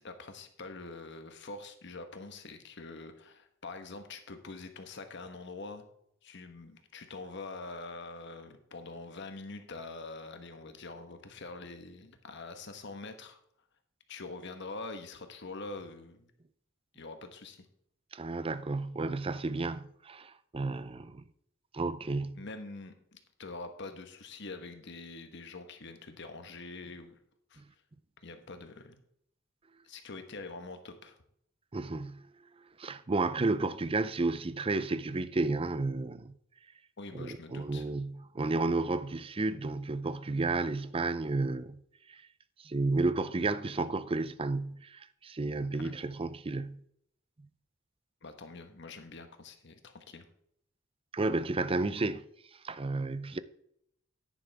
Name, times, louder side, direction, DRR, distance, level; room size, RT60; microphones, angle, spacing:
voice 1, 0.0-5.8 6.2-13.4 14.1-16.3 16.9-17.7 22.3-27.2 27.5-27.6 28.2-29.0 29.8-31.2 37.0-37.9 45.7-45.9 48.2-50.3, left 3 dB, 60° left, 1.3 m, -45 dB
voice 2, 18.1-21.2 21.7-22.4 31.7-32.3 32.8-36.3 37.1-41.8 42.1-42.2 42.6-46.8 51.1-52.2 52.6-53.4, right 3 dB, 30° right, 0.5 m, -32 dB
10.0 x 10.0 x 3.5 m
head